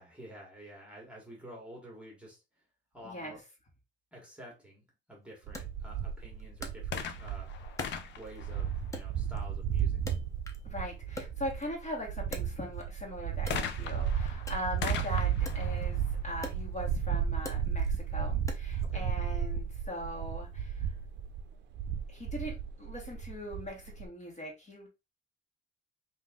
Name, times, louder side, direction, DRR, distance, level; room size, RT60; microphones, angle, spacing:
voice 1, 0.0-2.4 2.9-3.4 4.1-7.5 8.2-10.0 18.8-19.1, equal, 5° right, -2 dB, 1.4 m, -50 dB
voice 2, 3.0-3.3 10.6-20.9 22.1-24.9, equal, 35° left, -1 dB, 1.7 m, -40 dB
Wood, 5.5-7.3 7.8-8.5 8.9-10.7 11.0-13.0 13.4-18.9, left 1 dB, 15° left, 0.7 m, -46 dB
sound 1, 5.5-24.1, right 8 dB, 65° right, 0.5 m, -34 dB
sound 2, 6.8-9.4 13.5-17.1 17.9-18.0, left 7 dB, 65° left, 0.6 m, -40 dB
3.7 x 2.7 x 3.5 m, 0.26 s
cardioid pair, 145°, 20 cm